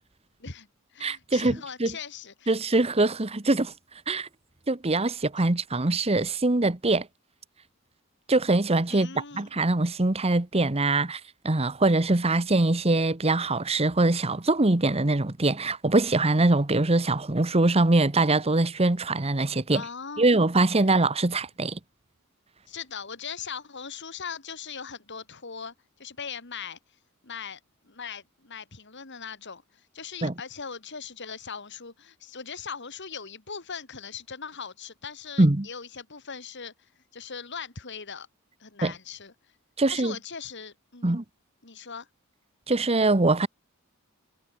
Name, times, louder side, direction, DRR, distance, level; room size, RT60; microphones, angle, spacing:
voice 1, 0.4-2.5 8.9-9.5 19.7-20.3 22.7-25.7 26.0-26.8 27.2-27.6 27.8-36.7 37.1-38.3 38.6-39.3 39.9-41.1 41.6-42.1, left 6 dB, 55° left, 2.6 m, -40 dB
voice 2, 1.0-1.5 1.8-1.9 2.5-3.7 4.1-4.3 4.7-7.1 8.3-19.8 20.2-21.8 30.2-30.3 35.4-35.7 38.8-38.9 39.8-40.1 41.0-41.2 42.7-43.5, right 2 dB, 30° right, 1.1 m, -23 dB
head